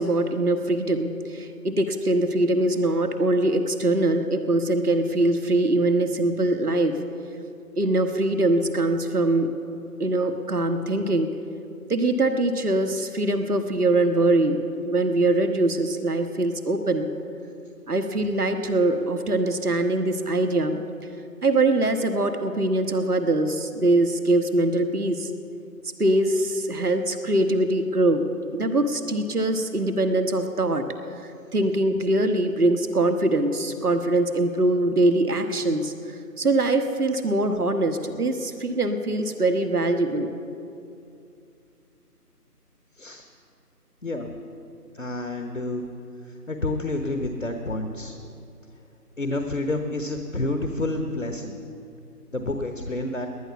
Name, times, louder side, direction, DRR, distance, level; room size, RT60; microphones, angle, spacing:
voice 1, 0.0-7.0 7.8-9.5 10.0-11.3 11.9-17.1 17.9-20.8 21.4-25.3 26.0-30.9 31.5-35.9 36.4-40.3, right 2 dB, 70° right, 7 dB, 1.4 m, -23 dB
voice 2, 44.9-45.9 46.5-48.3 49.2-51.5 52.3-53.3, left 2 dB, 50° left, 5 dB, 1.2 m, -29 dB
19.5 x 11.0 x 7.0 m, 2.6 s
figure-of-eight pair, 170°, 48 cm